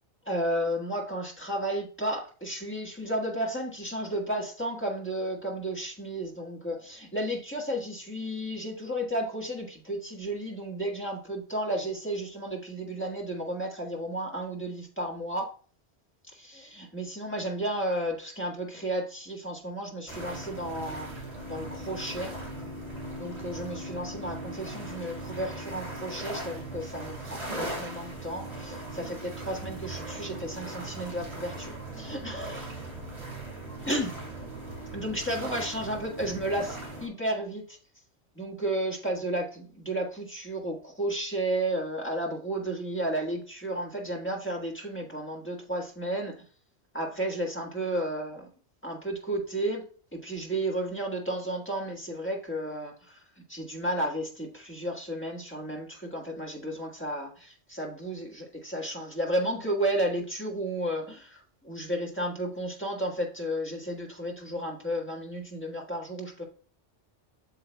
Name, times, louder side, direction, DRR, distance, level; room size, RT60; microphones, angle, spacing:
voice 1, 0.2-15.5 16.3-21.1 21.5-22.4 23.2-32.7 33.9-34.1 34.9-37.8 38.3-46.3 46.9-48.5 48.8-49.9 50.1-66.5, right 1 dB, 10° left, -1 dB, 1.5 m, -33 dB
sound 1, 20.1-37.1, right 1 dB, 30° right, 3.0 m, -39 dB
8.1 x 6.8 x 2.3 m, 0.42 s
omnidirectional pair, 1.2 m